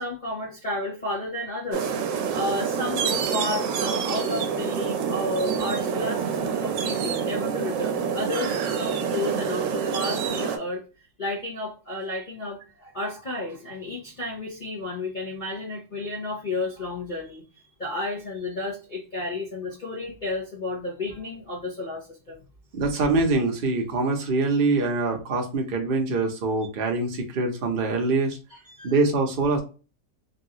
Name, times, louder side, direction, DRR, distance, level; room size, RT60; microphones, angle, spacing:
voice 1, 0.0-1.9 2.3-10.8 11.2-17.4 17.8-22.4 28.7-28.9, left 2 dB, 55° left, -5 dB, 0.5 m, -32 dB
sound 1, 1.7-10.6, right 7 dB, 85° right, 1.3 m, -27 dB
voice 2, 22.7-28.4 28.8-29.6, right 3 dB, 50° right, 2 dB, 0.6 m, -24 dB
3.5 x 2.4 x 2.8 m, 0.33 s
omnidirectional pair, 1.9 m